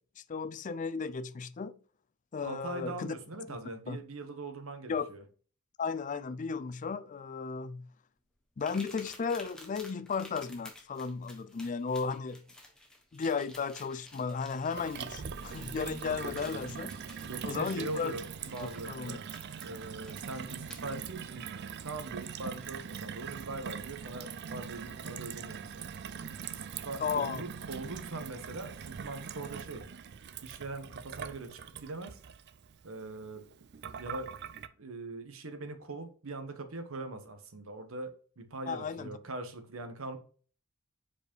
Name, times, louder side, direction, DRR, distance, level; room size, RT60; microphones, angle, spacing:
voice 1, 0.3-1.7 2.3-3.1 3.5-3.6 3.9-4.0 4.9-5.1 5.8-7.9 8.6-12.4 13.1-16.9 17.4-18.1 18.9-19.2 27.0-27.4 38.7-39.1, left 5 dB, 35° left, 0.4 m, -34 dB
voice 2, 2.4-5.2 17.3-19.2 19.6-21.5 21.8-25.9 26.5-29.8 30.4-32.2 32.8-33.4 34.0-34.3 34.8-40.2, right 2 dB, 70° right, 1.1 m, -42 dB
cards edit, 8.6-21.0 22.2-22.3 22.9-23.0, left 1 dB, 5° left, 1.2 m, -53 dB
Gurgling / Water tap faucet / Sink (filling or washing), 14.8-34.7, right 7 dB, 50° right, 0.4 m, -42 dB
4.9 x 4.8 x 4.5 m
head